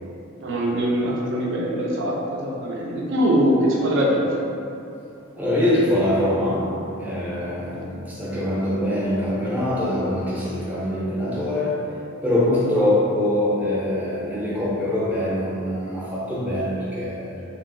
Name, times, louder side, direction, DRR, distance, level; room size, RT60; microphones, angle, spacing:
voice 1, 0.4-4.2, equal, 65° right, -3 dB, 0.5 m, -22 dB
voice 2, 5.4-11.9 12.2-17.4, left 1 dB, 10° right, -8 dB, 0.6 m, -23 dB
2.8 x 2.7 x 2.6 m, 2.8 s
head